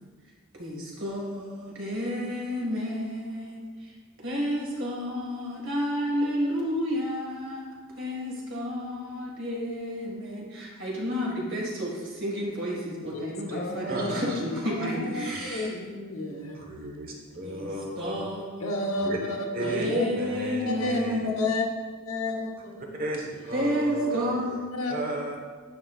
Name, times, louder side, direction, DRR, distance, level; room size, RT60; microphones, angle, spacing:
voice 1, 0.5-3.9 4.2-7.7 8.0-15.7 17.4-17.7 18.0-18.9 19.6-21.4 23.5-24.7, equal, 65° right, -3 dB, 1.9 m, -31 dB
voice 2, 13.1-14.3 14.8-17.0 18.6-20.1 20.7-21.0 21.2-21.6 22.1-23.0 24.0-24.1 24.7-24.9 25.3-25.4, left 2 dB, 80° left, 1 dB, 1.0 m, -32 dB
voice 3, 13.9-14.3 15.0-15.4 16.5-18.3 19.0-19.2 19.5-19.9 20.1-21.3 22.8-24.6 24.9-25.4, right 1 dB, 45° right, 0 dB, 1.1 m, -35 dB
9.4 x 5.4 x 2.4 m, 1.4 s
head